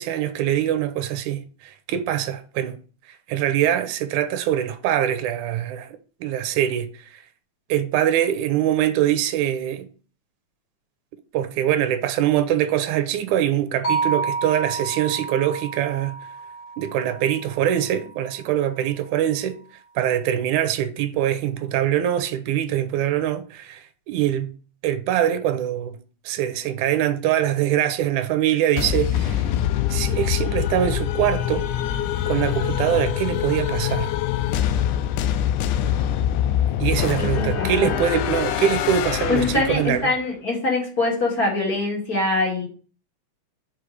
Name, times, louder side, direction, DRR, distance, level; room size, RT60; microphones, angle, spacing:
voice 1, 0.0-2.8 3.1-6.9 7.1-7.2 7.7-9.9 11.3-16.1 16.8-19.6 20.0-24.5 24.8-26.0 26.3-29.5 29.9-31.7 32.3-34.1 36.8-40.1, right 11 dB, 85° right, 2.2 m, -23 dB
sound 1, 13.8-18.0, right 4 dB, 70° left, 0.7 m, -29 dB
sound 2, 28.8-40.2, left 11 dB, 90° left, 2.1 m, -24 dB
voice 2, 37.2-38.0 39.3-42.7, left 3 dB, 35° left, 2.2 m, -24 dB
5.1 x 5.1 x 6.2 m
omnidirectional pair, 3.5 m